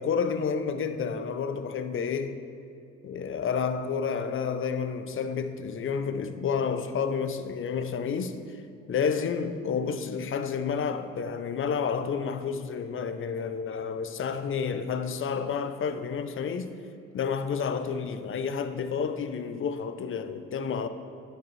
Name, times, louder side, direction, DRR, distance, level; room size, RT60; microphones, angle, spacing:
voice 1, 0.0-2.4 3.0-8.4 8.9-16.7 17.1-20.9, left 6 dB, 45° left, 0.5 m, -30 dB
11.0 x 5.2 x 3.1 m
cardioid pair, 90°, 30 cm